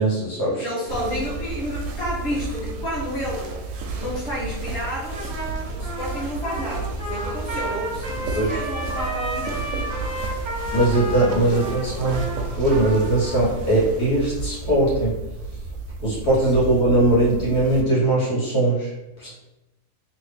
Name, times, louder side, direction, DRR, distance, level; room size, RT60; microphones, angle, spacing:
voice 1, 0.0-0.6 8.3-8.6 10.7-12.2 12.6-15.1 16.0-18.9 19.2-19.3, right 2 dB, 85° left, -7 dB, 1.8 m, -20 dB
voice 2, 0.5-3.6 3.9-5.2 5.7-10.2 11.4-12.4 16.5-16.7, left 1 dB, 45° left, -7 dB, 1.5 m, -31 dB
sound 1, 0.9-17.8, right 3 dB, 65° right, 0.8 m, -32 dB
Trumpet, 5.1-13.4, right 1 dB, 40° right, 0.4 m, -32 dB
3.2 x 2.5 x 3.3 m, 0.99 s
omnidirectional pair, 1.6 m